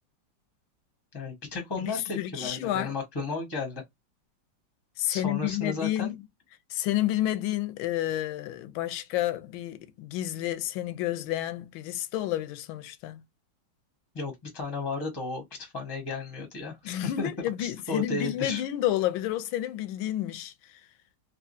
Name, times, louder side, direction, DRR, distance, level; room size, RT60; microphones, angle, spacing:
voice 1, 1.1-3.8 5.1-6.1 14.1-17.3 17.6-18.6, left 3 dB, 20° left, 0.8 m, -34 dB
voice 2, 2.2-2.9 5.0-6.2 6.7-13.2 16.8-20.8, left 13 dB, 85° left, 1.4 m, -30 dB
3.5 x 2.9 x 2.5 m
omnidirectional pair, 2.1 m